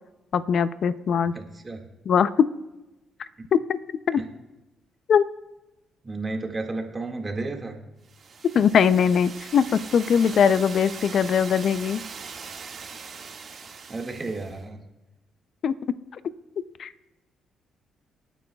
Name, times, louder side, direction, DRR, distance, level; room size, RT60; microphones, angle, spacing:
voice 1, 0.3-1.3 2.1-2.5 3.5-3.8 4.1-4.2 5.1-5.2 8.5-12.0 15.6-15.7 16.8-16.9, left 7 dB, 60° left, 14 dB, 0.5 m, -21 dB
voice 2, 1.3-1.9 4.2-4.3 6.0-7.8 13.9-14.8, right 3 dB, 25° right, 2 dB, 1.9 m, -32 dB
sound 1, 8.1-14.6, right 5 dB, 55° right, 1.8 m, -41 dB
27.5 x 9.2 x 2.3 m, 1.0 s
cardioid pair, 90°, 0 cm